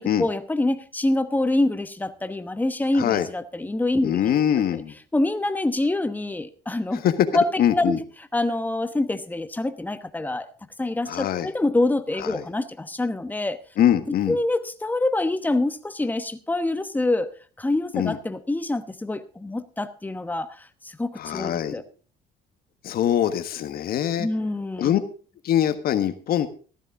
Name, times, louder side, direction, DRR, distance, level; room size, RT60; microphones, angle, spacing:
voice 1, 0.0-4.2 4.7-4.8 5.1-7.0 7.3-8.0 8.3-10.5 10.8-13.6 14.1-17.3 17.6-21.8 24.2-24.9, left 2 dB, 10° left, 11 dB, 1.0 m, -26 dB
voice 2, 4.0-4.9 7.0-7.3 7.6-8.0 11.1-11.5 12.2-12.4 13.8-14.4 17.9-18.2 21.2-21.8 22.8-24.3 24.8-25.0 25.4-26.5, left 10 dB, 65° left, 10 dB, 1.4 m, -23 dB
15.0 x 12.0 x 3.7 m, 0.38 s
cardioid pair, 110°, 17 cm